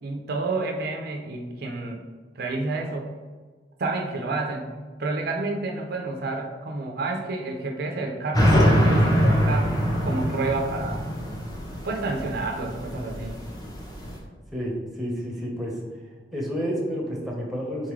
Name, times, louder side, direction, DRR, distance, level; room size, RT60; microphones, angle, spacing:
voice 1, 0.0-2.0 2.4-3.1 3.8-4.7 5.0-11.1 11.8-13.4, right 3 dB, 60° right, 2 dB, 0.5 m, -29 dB
sound 1, 8.3-14.2, equal, 20° left, 0.9 m, -23 dB
voice 2, 14.5-15.8 16.3-17.9, equal, ahead, -3 dB, 0.9 m, -30 dB
4.1 x 3.6 x 3.1 m, 1.4 s
head